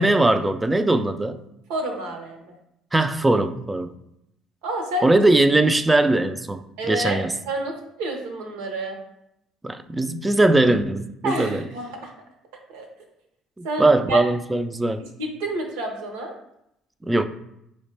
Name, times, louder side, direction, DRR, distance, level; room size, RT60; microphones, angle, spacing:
voice 1, 0.0-1.4 2.9-3.9 5.0-7.3 9.6-11.6 13.6-15.0 17.0-17.2, right 2 dB, 15° right, 10 dB, 0.3 m, -20 dB
voice 2, 1.7-2.5 4.6-5.1 6.8-7.2 7.4-9.0 11.2-12.1 12.7-12.9 13.6-14.2 15.2-16.3, right 1 dB, 85° right, 2 dB, 0.7 m, -29 dB
4.7 x 2.1 x 3.2 m, 0.79 s
supercardioid pair, 70°, 0 cm